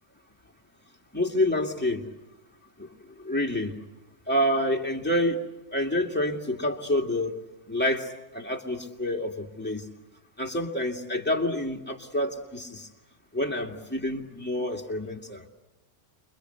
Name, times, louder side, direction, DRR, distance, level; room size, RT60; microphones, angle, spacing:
voice 1, 1.1-2.1 2.8-2.9 3.2-3.8 4.3-5.4 5.7-7.4 7.7-9.8 10.4-12.9 13.3-15.4, left 1 dB, 10° left, 1 dB, 2.4 m, -28 dB
28.5 x 24.0 x 8.1 m, 0.97 s
omnidirectional pair, 1.3 m